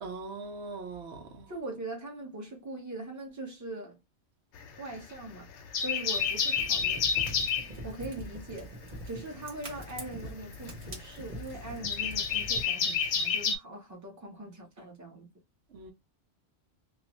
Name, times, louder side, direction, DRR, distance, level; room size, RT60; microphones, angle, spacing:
voice 1, 0.0-1.5 15.7-15.9, right 3 dB, 80° right, 0.9 m, -41 dB
voice 2, 1.5-4.0 4.8-5.5 5.8-7.1 7.8-8.7 9.1-15.3, right 1 dB, 15° right, 0.8 m, -41 dB
sound 1, 4.6-5.2 5.6-7.7 9.4-13.6, left 6 dB, 80° left, 0.9 m, -30 dB
Fire, 6.1-12.6, right 1 dB, 45° right, 1.1 m, -44 dB
2.5 x 2.2 x 3.0 m
omnidirectional pair, 1.2 m